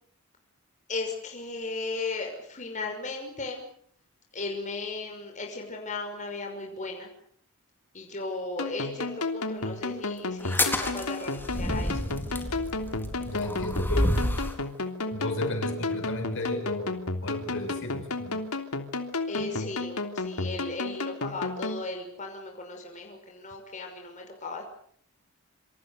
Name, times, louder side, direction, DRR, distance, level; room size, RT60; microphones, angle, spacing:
voice 1, 0.9-3.6 4.3-7.1 7.9-12.0 19.3-24.6, left 3 dB, 35° left, 2 dB, 5.9 m, -36 dB
sound 1, 8.6-21.8, left 3 dB, 80° left, 3.2 m, -33 dB
sound 2, 10.4-14.6, left 1 dB, 10° left, 4.0 m, -29 dB
voice 2, 13.3-14.2 15.1-18.4, left 1 dB, 60° left, 5 dB, 7.1 m, -33 dB
27.5 x 27.0 x 6.8 m, 0.64 s
head